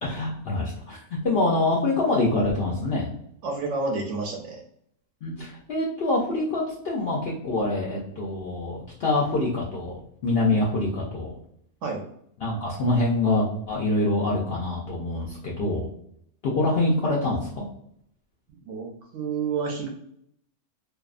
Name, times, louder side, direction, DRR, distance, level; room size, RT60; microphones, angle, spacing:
voice 1, 0.0-3.1 5.2-11.3 12.4-15.9 16.4-17.6, left 2 dB, 65° left, -4 dB, 0.6 m, -25 dB
voice 2, 3.4-4.6 11.8-12.0 18.7-19.9, right 4 dB, 65° right, 0 dB, 0.8 m, -30 dB
2.6 x 2.2 x 2.3 m, 0.69 s
omnidirectional pair, 1.6 m